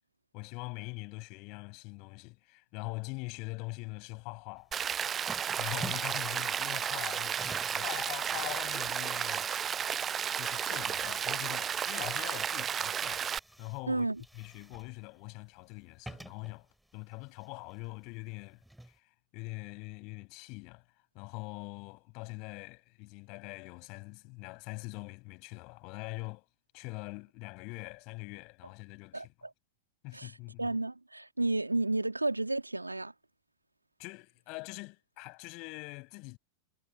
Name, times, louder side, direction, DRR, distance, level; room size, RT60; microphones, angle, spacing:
voice 1, 0.3-4.9 5.6-9.5 10.3-13.3 13.6-14.1 14.3-16.7 16.9-18.6 18.9-20.8 21.1-26.5 26.7-29.3 30.0-30.7 34.0-36.4, left 29 dB, 45° left, 7.4 m, -43 dB
sound 1, 4.6-19.0, right 1 dB, 5° right, 5.3 m, -51 dB
Rain, 4.7-13.4, right 8 dB, 25° right, 0.4 m, -33 dB
voice 2, 13.9-14.2 29.1-29.2 30.1-30.3 30.6-33.1, right 2 dB, 85° right, 2.7 m, -31 dB
figure-of-eight pair, 90°, 0 cm